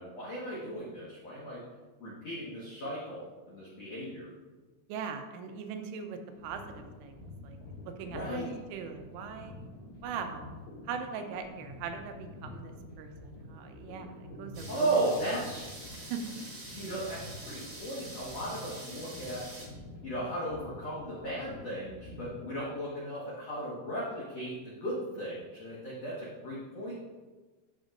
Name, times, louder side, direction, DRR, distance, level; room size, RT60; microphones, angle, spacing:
voice 1, 0.0-1.6 2.0-4.3 8.1-8.5 14.7-15.6 16.7-19.5 20.0-26.9, right 1 dB, 80° left, -7 dB, 1.4 m, -36 dB
voice 2, 4.9-7.6 7.9-9.5 10.0-10.5 10.9-15.0 16.1-16.5, right 6 dB, 85° right, 5 dB, 3.3 m, -40 dB
sound 1, 6.3-22.4, left 1 dB, 65° left, 5.0 m, -48 dB
sound 2, 14.5-19.7, right 1 dB, 40° right, 1.9 m, -46 dB
13.5 x 6.2 x 2.6 m, 1.3 s
omnidirectional pair, 5.6 m